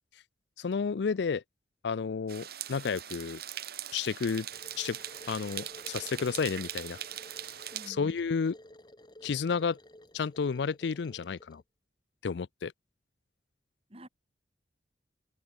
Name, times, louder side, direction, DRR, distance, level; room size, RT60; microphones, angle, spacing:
voice 1, 0.6-1.4 1.8-3.4 3.9-4.5 4.8-5.0 5.3-7.0 7.9-8.5 9.2-9.8 10.1-11.6 12.2-12.7, left 5 dB, 70° left, 0.4 m, -31 dB
sound 1, 2.3-7.9, right 11 dB, 55° right, 2.2 m, -41 dB
sound 2, 4.5-11.6, left 1 dB, 25° left, 5.0 m, -53 dB
voice 2, 7.7-8.2 13.9-14.1, equal, 35° right, 7.7 m, -48 dB
head